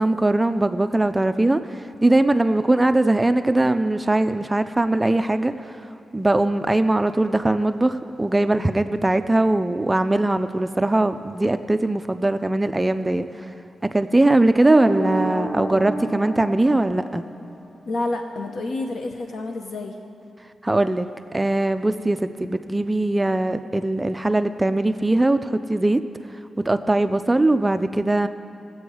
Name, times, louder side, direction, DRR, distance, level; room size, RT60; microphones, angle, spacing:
voice 1, 0.0-5.8 6.1-13.3 13.8-17.2 20.6-26.0 26.6-28.3, right 2 dB, 15° right, 9 dB, 0.3 m, -20 dB
sound 1, 14.6-17.6, right 1 dB, 25° left, 1.8 m, -29 dB
voice 2, 17.9-20.0, left 2 dB, 65° left, 3 dB, 0.7 m, -28 dB
19.5 x 7.8 x 4.8 m, 2.6 s
wide cardioid pair, 145°, 0 cm